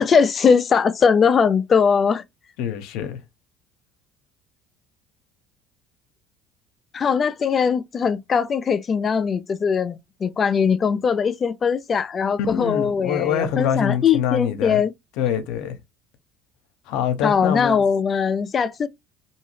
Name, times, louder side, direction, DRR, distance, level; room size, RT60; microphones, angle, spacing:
voice 1, 0.0-2.2 6.9-14.9 17.2-18.9, left 6 dB, 35° left, 0.4 m, -20 dB
voice 2, 2.6-3.2 12.5-14.8 15.2-15.8 16.9-17.8, left 8 dB, 75° left, 0.7 m, -25 dB
2.7 x 2.7 x 3.1 m
cardioid pair, 110°, 0 cm